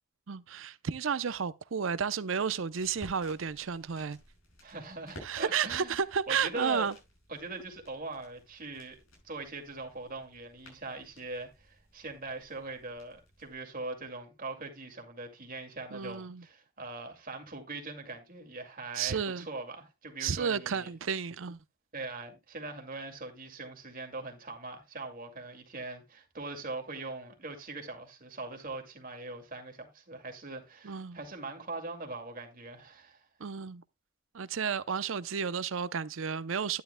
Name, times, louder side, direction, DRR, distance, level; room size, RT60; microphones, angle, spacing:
voice 1, 0.3-4.2 5.2-6.9 15.9-16.4 18.9-19.5 20.2-21.6 30.8-31.2 33.4-33.8 34.3-36.8, right 6 dB, 70° right, 0.6 m, -32 dB
sound 1, 2.3-13.5, equal, 85° left, 6.9 m, -56 dB
voice 2, 4.6-6.0 6.3-6.9 7.3-9.0 9.2-20.9 21.9-33.2, right 3 dB, 45° right, 2.2 m, -41 dB
11.5 x 10.5 x 2.2 m
head